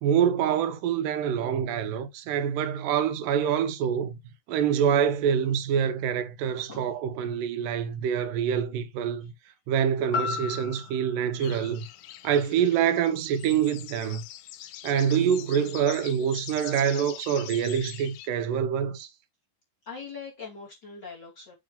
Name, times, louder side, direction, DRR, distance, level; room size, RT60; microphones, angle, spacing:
voice 1, 0.0-4.2 4.5-9.3 9.7-11.9 12.2-14.2 14.8-19.1, right 8 dB, 80° right, 2.5 m, -26 dB
voice 2, 6.5-6.9 19.8-21.5, left 5 dB, 35° left, 2.6 m, -41 dB
sound 1, 10.1-14.2 14.7-14.8, left 7 dB, 65° left, 2.9 m, -37 dB
sound 2, 11.4-18.3, left 13 dB, 90° left, 2.4 m, -43 dB
7.5 x 3.7 x 5.2 m
omnidirectional pair, 4.0 m